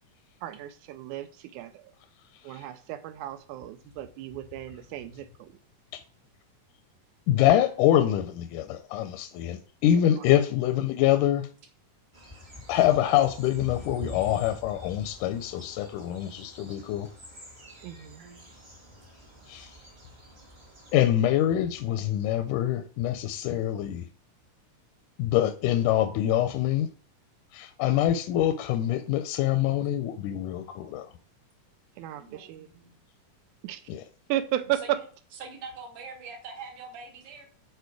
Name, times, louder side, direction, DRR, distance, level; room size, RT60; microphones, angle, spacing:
voice 1, 0.4-1.8 2.4-5.5 17.8-18.2 32.0-32.7 33.6-33.8 34.3-35.0, right 13 dB, 80° right, 2.0 m, -34 dB
voice 2, 7.3-11.5 12.7-17.1 19.5-19.7 20.9-24.0 25.2-26.9 27.5-31.1 33.9-34.0, left 12 dB, 85° left, 2.0 m, -25 dB
sound 1, 12.1-20.9, left 2 dB, 20° right, 1.1 m, -45 dB
voice 3, 17.9-18.4 32.2-33.0 34.6-35.1 35.3-37.4, right 4 dB, 55° right, 2.1 m, -44 dB
6.8 x 4.8 x 4.7 m
omnidirectional pair, 3.7 m